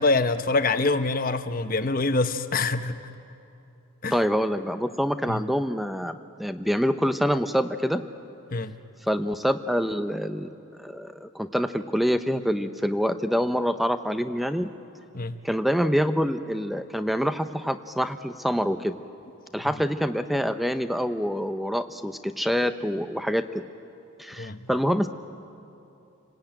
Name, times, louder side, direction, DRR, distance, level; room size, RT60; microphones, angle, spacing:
voice 1, 0.0-3.0 4.0-4.1 5.3-5.4 8.5-8.7 15.1-15.4 24.4-24.7, left 3 dB, 40° left, 9 dB, 0.9 m, -25 dB
voice 2, 4.1-8.0 9.0-10.5 10.8-14.7 15.4-19.0 19.5-23.6 24.2-25.1, equal, ahead, 10 dB, 0.7 m, -26 dB
29.0 x 19.5 x 9.0 m, 2.8 s
head